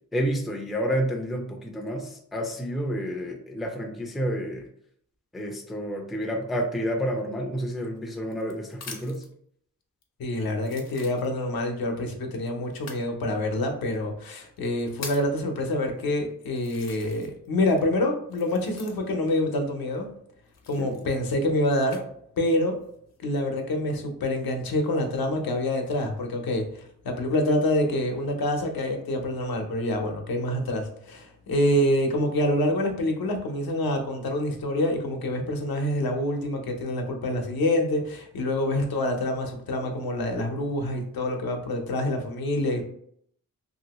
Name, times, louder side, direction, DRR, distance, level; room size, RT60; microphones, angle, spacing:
voice 1, 0.1-4.7 5.3-9.2 20.8-21.0, equal, ahead, 1 dB, 0.3 m, -29 dB
sound 1, 7.7-9.3 10.0-10.1 10.6-11.6 12.7-13.1 13.9-14.0 14.6-15.4 16.0-16.1 16.6-17.5 17.7-19.3 20.5-22.0 22.7-23.2, left 4 dB, 50° left, 0.6 m, -44 dB
voice 2, 10.2-20.1 20.7-22.0 22.4-22.8 23.2-26.6 27.0-42.8, left 1 dB, 85° left, 3 dB, 0.7 m, -26 dB
2.8 x 2.7 x 2.9 m, 0.67 s
wide cardioid pair, 170°, 35 cm